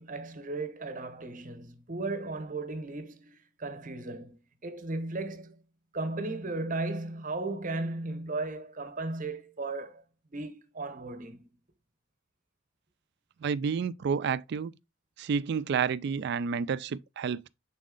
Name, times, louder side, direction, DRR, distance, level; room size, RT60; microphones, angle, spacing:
voice 1, 0.0-4.4 4.6-5.6 5.9-10.0 10.3-11.5, right 2 dB, 40° right, 0.9 m, -36 dB
voice 2, 13.4-14.7 15.2-17.5, right 6 dB, 60° right, 0.3 m, -30 dB
6.4 x 4.1 x 3.7 m
head